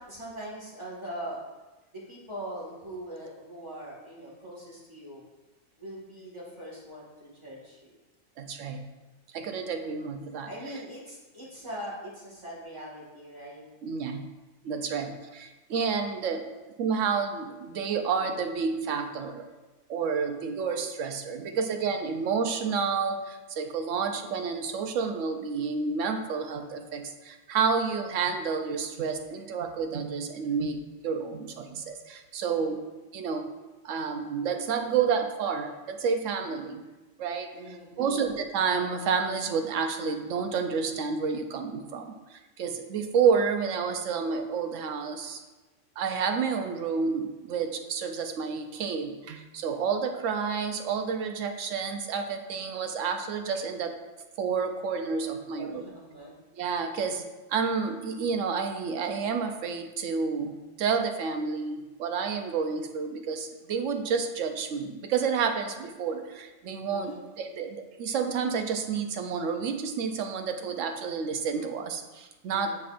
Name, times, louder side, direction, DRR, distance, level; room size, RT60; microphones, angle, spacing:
voice 1, 0.0-1.4 1.9-5.2 5.8-7.9 9.7-9.9 10.5-13.6 32.4-32.9 37.5-38.3 55.6-56.4 66.9-67.3 72.5-72.8, right 1 dB, 25° right, -6 dB, 1.9 m, -42 dB
voice 2, 8.4-8.8 9.3-10.5 13.8-14.3 14.6-16.5 16.8-19.5 19.9-32.8 33.1-33.5 33.8-36.8 37.2-37.5 38.0-45.4 46.0-53.9 54.4-55.9 56.6-72.7, right 5 dB, 90° right, 5 dB, 1.0 m, -30 dB
6.7 x 6.3 x 2.5 m, 1.1 s
omnidirectional pair, 1.3 m